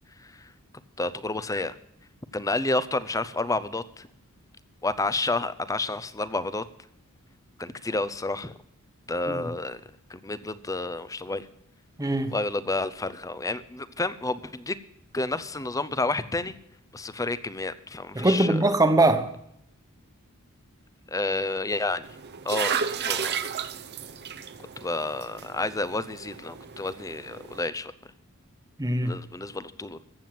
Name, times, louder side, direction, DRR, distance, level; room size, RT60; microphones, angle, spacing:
voice 1, 1.0-1.7 2.3-4.1 4.8-6.6 7.6-8.6 9.1-9.8 10.1-11.5 12.3-14.8 15.1-16.5 16.9-18.6 21.1-22.0 22.4-22.8 23.0-23.3 24.8-27.9 29.0-30.0, left 2 dB, 15° left, 0.6 m, -30 dB
voice 2, 12.0-12.3 18.1-19.3 28.8-29.2, right 2 dB, 15° right, 1.1 m, -22 dB
sound 1, 22.0-27.7, right 7 dB, 50° right, 0.7 m, -33 dB
14.5 x 7.6 x 7.6 m
head